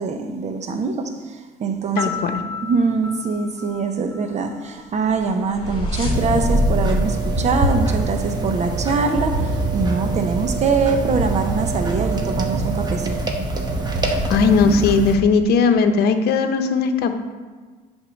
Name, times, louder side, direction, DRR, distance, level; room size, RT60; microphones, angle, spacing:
voice 1, 0.0-2.1 2.6-13.2, right 4 dB, 40° right, 7 dB, 0.9 m, -23 dB
voice 2, 2.0-2.4 14.3-17.2, left 4 dB, 70° left, 7 dB, 0.8 m, -18 dB
Piano, 2.0-4.8, left 4 dB, 10° left, 2.1 m, -33 dB
sound 1, 5.0-8.7, left 1 dB, 30° left, 2.3 m, -24 dB
sound 2, 6.1-15.1, right 2 dB, 25° right, 1.0 m, -24 dB
8.0 x 3.7 x 6.3 m, 1.4 s
cardioid pair, 110°, 17 cm